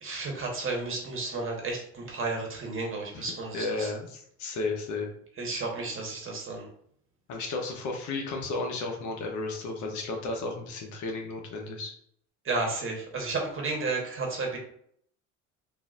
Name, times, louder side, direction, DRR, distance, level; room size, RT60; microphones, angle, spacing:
voice 1, 0.0-3.9 5.4-6.7 12.4-14.6, right 3 dB, 40° right, 0 dB, 1.2 m, -32 dB
voice 2, 3.5-5.1 7.3-11.9, left 3 dB, 60° left, 1 dB, 1.0 m, -33 dB
3.9 x 2.7 x 2.5 m, 0.65 s
supercardioid pair, 90°, 34 cm